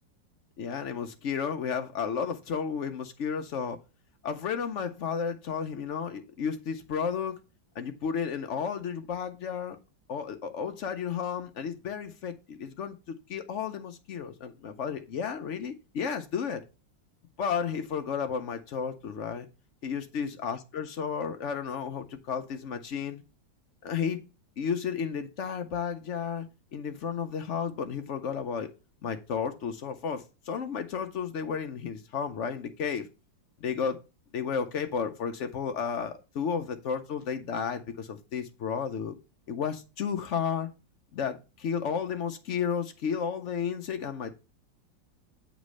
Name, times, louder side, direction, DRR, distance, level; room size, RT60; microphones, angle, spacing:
voice 1, 0.6-3.8 4.2-7.4 7.7-9.8 10.1-16.6 17.4-19.5 19.8-23.2 23.8-24.2 24.6-28.7 29.0-33.1 33.6-34.0 34.3-39.1 39.5-40.7 41.1-44.4, left 7 dB, 65° left, 0.7 m, -32 dB
9.0 x 3.1 x 6.3 m
omnidirectional pair, 2.0 m